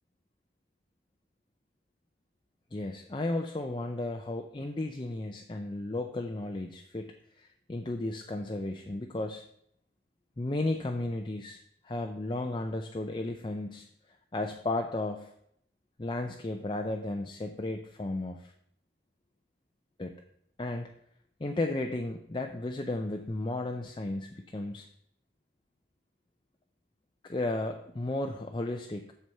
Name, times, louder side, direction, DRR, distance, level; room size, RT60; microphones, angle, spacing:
voice 1, 2.7-9.4 10.4-13.9 14.3-15.3 16.0-18.5 20.0-20.2 20.6-20.9 21.4-24.9 27.2-29.1, left 2 dB, 25° left, 4 dB, 0.5 m, -34 dB
7.7 x 6.9 x 5.5 m, 0.72 s
head